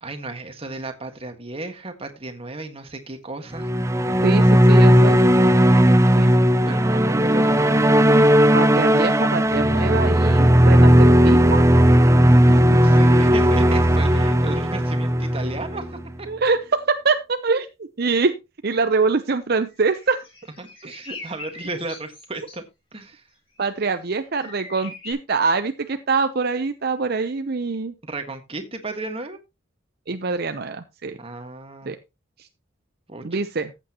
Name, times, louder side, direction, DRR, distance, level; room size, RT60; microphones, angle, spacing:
voice 1, 0.0-3.7 6.7-7.9 12.7-16.3 20.6-22.6 22.9-23.2 28.0-29.4 31.1-31.9 33.1-33.4, right 2 dB, 30° right, 7 dB, 1.7 m, -34 dB
sound 1, 3.5-16.0, equal, 15° right, 0.5 m, -16 dB
voice 2, 4.2-5.2 6.2-6.3 8.5-11.6 12.4-12.8 16.3-18.3 18.6-20.2 23.6-27.9 30.1-31.2 31.9-32.0 32.4-32.5 33.2-33.7, right 4 dB, 55° right, 9 dB, 0.7 m, -24 dB
sound 2, 19.7-22.6 23.6-23.8 24.4-25.1, left 3 dB, 30° left, 6.3 m, -41 dB
14.5 x 8.3 x 3.0 m, 0.25 s
head